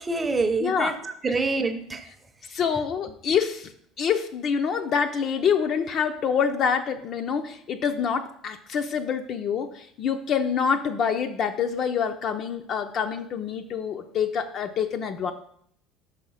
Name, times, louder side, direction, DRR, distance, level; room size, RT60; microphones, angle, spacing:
voice 1, 0.0-2.1, right 3 dB, 15° right, 8 dB, 0.6 m, -26 dB
voice 2, 0.6-0.9 2.4-3.7 4.0-15.3, left 7 dB, 35° left, 6 dB, 0.4 m, -26 dB
5.9 x 4.8 x 5.6 m, 0.66 s
cardioid pair, 155°, 0 cm